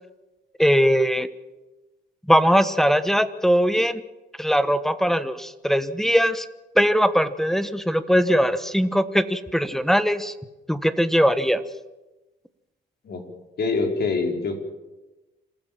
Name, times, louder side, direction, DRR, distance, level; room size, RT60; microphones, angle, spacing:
voice 1, 0.6-1.3 2.3-4.0 4.4-6.4 6.8-10.3 10.7-11.6, equal, ahead, 13 dB, 1.2 m, -20 dB
voice 2, 13.6-14.6, left 4 dB, 55° left, 4 dB, 4.6 m, -24 dB
27.0 x 14.5 x 7.5 m, 1.1 s
cardioid pair, 90°, 20 cm